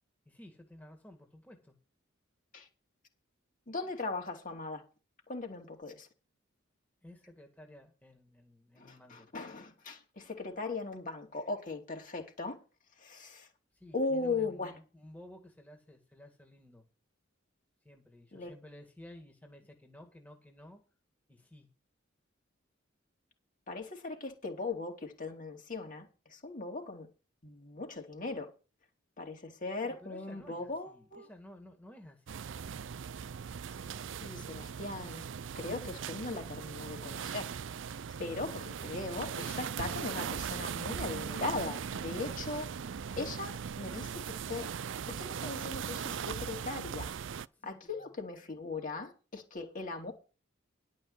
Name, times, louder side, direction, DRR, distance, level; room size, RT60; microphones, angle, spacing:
voice 1, 0.3-1.7 7.0-9.3 13.7-16.9 17.8-20.8 21.3-21.7 30.0-32.5 47.5-48.2, left 1 dB, 10° left, 2.1 m, -54 dB
voice 2, 3.7-4.8 5.3-6.1 8.8-12.6 13.0-13.5 13.9-14.7 18.3-18.5 23.7-27.1 27.4-28.5 29.2-31.3 34.2-35.3 35.5-37.5 38.2-42.7 43.2-44.7 45.1-47.1 47.6-50.1, left 3 dB, 45° left, 2.8 m, -39 dB
sound 1, 32.3-47.5, right 7 dB, 65° right, 0.5 m, -39 dB
11.5 x 5.4 x 8.1 m
head